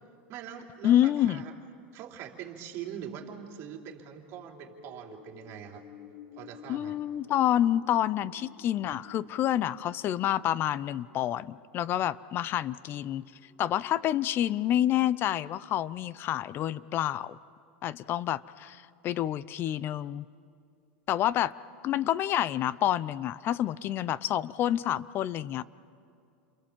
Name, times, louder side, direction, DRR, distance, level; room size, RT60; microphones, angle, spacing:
voice 1, 0.3-1.5 1.9-5.8 6.3-7.0, right 9 dB, 50° right, 1 dB, 3.2 m, -43 dB
voice 2, 0.8-1.4 6.7-13.3 13.6-17.4 17.8-20.3 21.1-21.5 21.8-25.6, left 12 dB, 40° left, 19 dB, 0.6 m, -28 dB
sound 1, 2.8-17.1, left 7 dB, 90° left, 2.2 m, -55 dB
30.0 x 23.5 x 7.4 m, 2.4 s
supercardioid pair, 120°, 6 cm